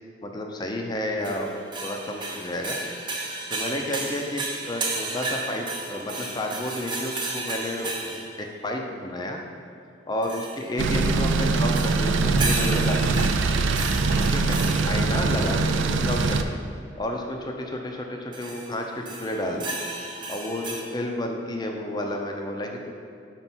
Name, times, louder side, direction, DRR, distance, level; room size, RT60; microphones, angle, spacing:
voice 1, 0.2-2.8 3.5-9.4 10.1-13.2 14.3-14.6 14.9-16.6 17.0-19.8 20.3-22.9, left 1 dB, 20° left, 2 dB, 0.5 m, -31 dB
sound 1, 1.2-8.4 10.2-10.8 11.8-15.2 18.3-18.7 19.1-20.8, right 3 dB, 25° right, 0.6 m, -33 dB
sound 2, 10.8-16.4, right 3 dB, 75° right, 0.4 m, -23 dB
5.6 x 4.4 x 6.0 m, 2.4 s
head